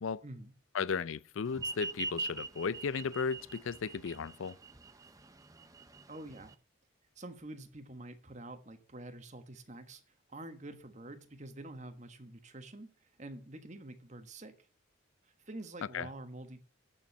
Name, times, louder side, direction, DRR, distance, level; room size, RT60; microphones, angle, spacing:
voice 1, 0.2-0.5 6.1-6.5 7.1-14.5 15.2-16.6, right 1 dB, 35° right, 1.4 m, -47 dB
voice 2, 0.7-4.6 15.9-16.1, left 5 dB, 85° left, 0.5 m, -35 dB
sound 1, 1.5-6.5, right 3 dB, 15° right, 0.7 m, -41 dB
8.7 x 7.2 x 8.3 m
head